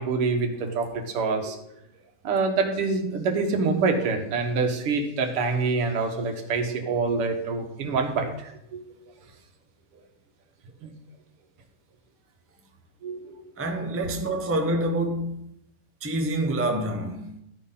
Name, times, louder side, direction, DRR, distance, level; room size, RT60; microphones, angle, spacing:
voice 1, 0.0-1.6 2.2-8.8 10.8-10.9 13.0-13.4, right 4 dB, 85° right, 2.2 m, -26 dB
voice 2, 13.6-15.5 16.0-17.3, right 1 dB, 15° right, 0.5 m, -27 dB
12.5 x 9.9 x 3.9 m
omnidirectional pair, 2.4 m